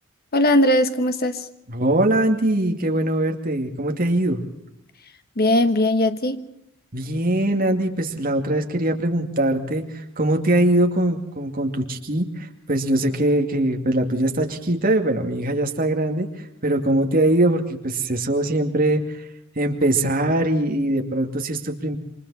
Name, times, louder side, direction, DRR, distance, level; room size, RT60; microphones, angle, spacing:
voice 1, 0.3-1.5 5.4-6.4, left 1 dB, 50° left, 10 dB, 1.4 m, -19 dB
voice 2, 1.7-4.4 6.9-16.3 16.6-19.0 19.6-22.0, right 1 dB, 45° right, 3 dB, 2.4 m, -22 dB
28.0 x 24.0 x 4.3 m, 0.79 s
head